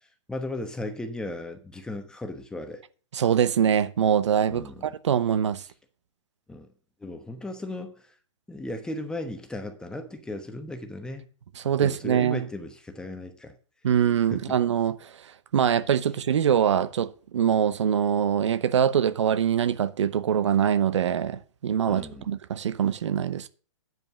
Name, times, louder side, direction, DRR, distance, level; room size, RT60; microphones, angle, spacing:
voice 1, 0.3-2.8 4.5-4.8 6.5-6.7 7.0-8.1 8.5-11.2 11.8-13.6 14.3-14.6 21.9-22.3, left 2 dB, 5° left, 1.1 m, -36 dB
voice 2, 3.1-5.6 11.6-12.5 13.8-15.1 15.5-23.5, right 8 dB, 75° right, 0.8 m, -24 dB
9.2 x 5.4 x 7.4 m
hypercardioid pair, 135°, 15 cm